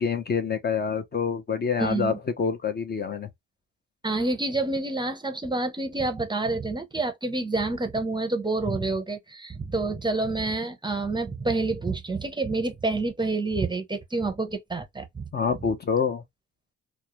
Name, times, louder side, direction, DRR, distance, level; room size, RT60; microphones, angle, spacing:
voice 1, 0.0-3.3 15.3-16.2, left 6 dB, 35° left, 0.5 m, -26 dB
voice 2, 1.8-2.2 4.0-15.2, right 3 dB, 15° right, 0.6 m, -28 dB
2.3 x 2.0 x 2.9 m
cardioid pair, 90°, 30 cm